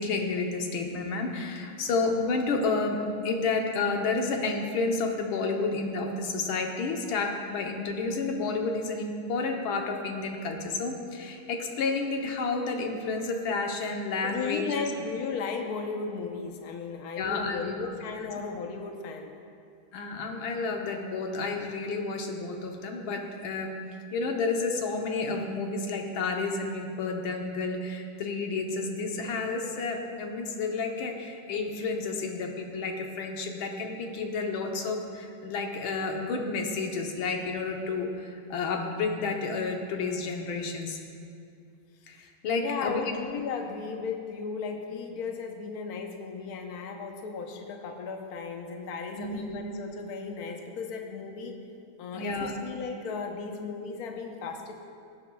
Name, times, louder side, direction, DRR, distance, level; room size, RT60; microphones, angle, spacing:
voice 1, 0.0-14.7 17.2-17.9 18.2-18.4 19.9-41.0 42.1-43.2 49.1-49.6 52.1-52.5, left 3 dB, 75° left, 2 dB, 1.8 m, -31 dB
voice 2, 14.2-19.3 42.6-51.6 52.0-54.7, left 5 dB, 60° left, 3 dB, 1.2 m, -35 dB
18.0 x 10.0 x 2.3 m, 2.5 s
omnidirectional pair, 2.3 m